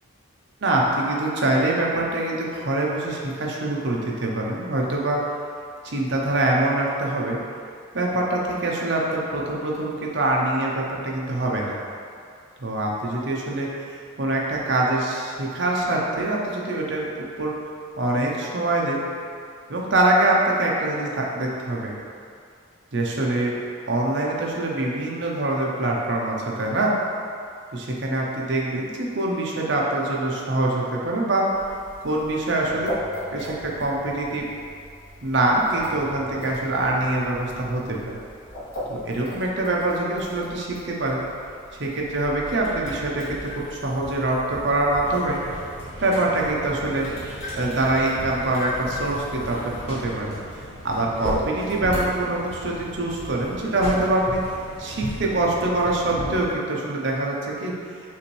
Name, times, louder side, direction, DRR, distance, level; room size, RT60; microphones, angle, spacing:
voice 1, 0.6-5.2 5.8-7.4 7.9-11.7 12.6-13.7 14.2-17.5 18.0-19.0 19.7-21.9 22.9-23.5 23.9-26.9 27.7-31.5 32.0-32.9 33.3-34.4 35.2-38.2 38.9-41.2 41.8-45.4 46.0-47.1 47.6-50.3 50.8-54.4 54.8-57.7, right 2 dB, 60° right, -2 dB, 0.6 m, -24 dB
Tl light startup, 31.5-45.8 46.4-49.8, left 1 dB, 65° left, 1.0 m, -38 dB
sound 1, 45.0-56.5, equal, 30° left, 1.2 m, -35 dB
5.6 x 2.6 x 3.2 m, 2.3 s
head